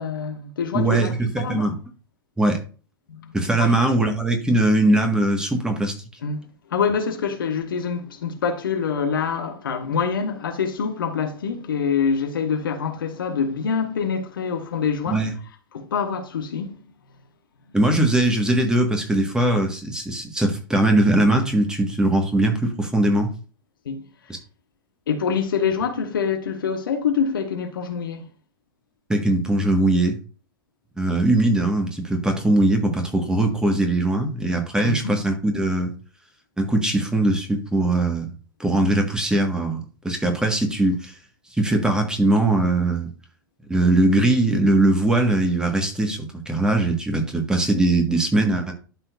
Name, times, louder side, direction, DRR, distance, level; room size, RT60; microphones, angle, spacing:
voice 1, 0.0-1.7 3.1-3.7 6.2-15.3 15.7-16.9 23.8-24.3 25.1-28.3 34.8-35.2, left 6 dB, 75° left, 1.3 m, -26 dB
voice 2, 0.7-1.8 2.4-2.6 3.3-5.9 15.1-15.3 17.7-23.3 24.3-24.4 29.1-30.2 31.0-35.9 36.6-38.3 38.6-41.2 41.6-43.1 43.7-48.7, right 2 dB, 5° right, 1.6 m, -20 dB
12.0 x 4.4 x 2.6 m
figure-of-eight pair, 95°, 12 cm